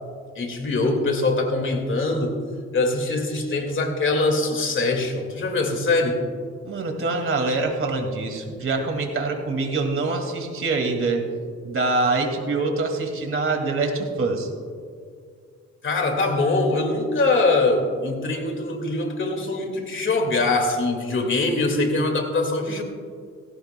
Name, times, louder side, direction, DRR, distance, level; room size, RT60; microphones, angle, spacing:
voice 1, 0.4-2.4 2.7-6.2 15.8-22.8, left 2 dB, 40° left, 4 dB, 2.0 m, -23 dB
voice 2, 6.6-11.2 11.6-14.5, right 3 dB, 45° right, 3 dB, 2.2 m, -25 dB
17.5 x 17.0 x 2.2 m, 2.1 s
cardioid pair, 90°, 30 cm